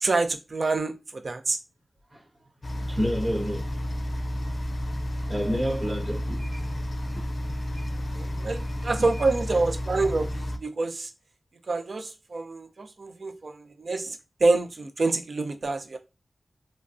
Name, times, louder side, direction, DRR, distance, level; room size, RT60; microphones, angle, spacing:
voice 1, 0.0-1.6 8.2-11.1 11.7-16.0, right 3 dB, 65° right, 0.4 m, -27 dB
sound 1, 2.6-10.6, equal, 60° left, 0.4 m, -31 dB
voice 2, 2.9-3.7 5.3-6.7 7.7-7.9 8.7-9.2 9.5-9.6, equal, 85° right, 1.1 m, -30 dB
3.1 x 2.3 x 2.5 m
wide cardioid pair, 65°, 0 cm